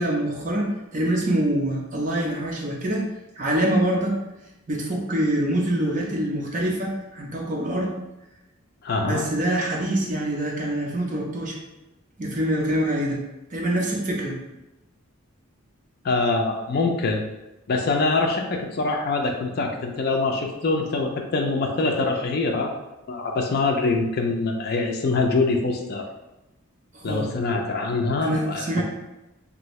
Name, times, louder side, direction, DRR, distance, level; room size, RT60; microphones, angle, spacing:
voice 1, 0.0-3.0 3.4-4.2 4.7-7.9 9.0-11.6 12.2-13.2 13.5-14.4 26.9-27.3 28.2-28.8, right 1 dB, 35° right, -2 dB, 0.6 m, -25 dB
voice 2, 8.8-9.2 13.8-13.9 16.0-17.2 17.7-22.7 23.1-26.1 27.0-28.8, left 3 dB, 45° left, 3 dB, 0.4 m, -24 dB
2.7 x 2.6 x 3.1 m, 0.99 s
head